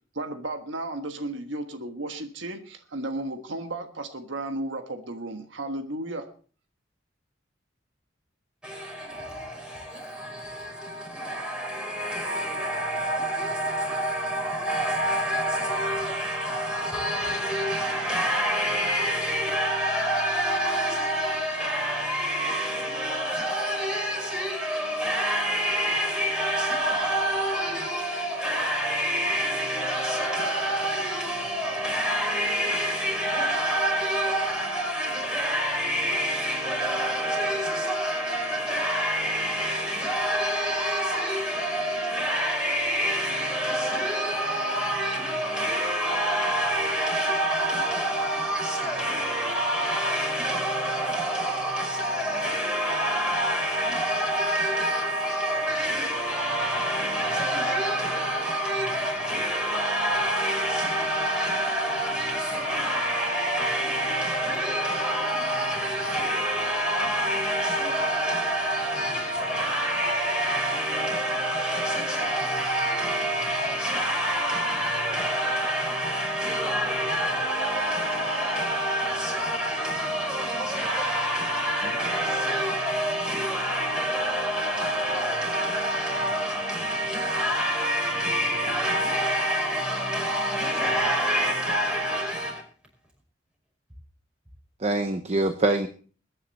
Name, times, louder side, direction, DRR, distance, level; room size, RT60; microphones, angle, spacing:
voice 1, 0.1-6.3, right 2 dB, 75° right, 1.4 m, -34 dB
voice 2, 8.6-92.6, equal, 5° right, 5.6 m, -27 dB
voice 3, 77.7-78.5 81.8-81.9 94.8-95.9, right 2 dB, 35° right, 0.8 m, -26 dB
21.5 x 9.9 x 4.2 m
head